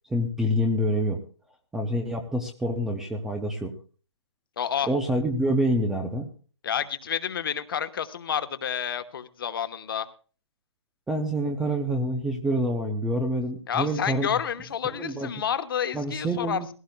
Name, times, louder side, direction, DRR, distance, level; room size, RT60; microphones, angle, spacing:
voice 1, 0.1-1.2 1.7-3.7 4.8-6.3 11.1-14.4 15.0-15.3 15.9-16.7, equal, 5° right, 5 dB, 0.5 m, -27 dB
voice 2, 4.6-4.9 6.6-10.1 13.7-16.7, left 8 dB, 45° left, 10 dB, 1.1 m, -29 dB
20.0 x 16.0 x 2.2 m, 0.38 s
hypercardioid pair, 165°, 16 cm